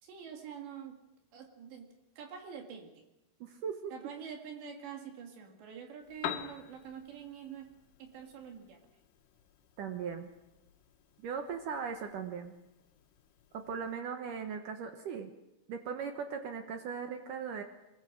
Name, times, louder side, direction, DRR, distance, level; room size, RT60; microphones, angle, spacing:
voice 1, 0.0-1.0 1.3-1.9 2.2-3.1 3.9-7.7 8.0-8.8, right 7 dB, 65° right, 2 dB, 4.0 m, -46 dB
voice 2, 3.4-3.9 9.8-10.3 11.2-12.5 13.5-15.3 15.7-17.6, right 6 dB, 85° right, 5 dB, 1.8 m, -38 dB
Piano, 6.0-14.0, left 11 dB, 85° left, 3.9 m, -48 dB
24.0 x 21.0 x 6.4 m, 0.95 s
omnidirectional pair, 5.6 m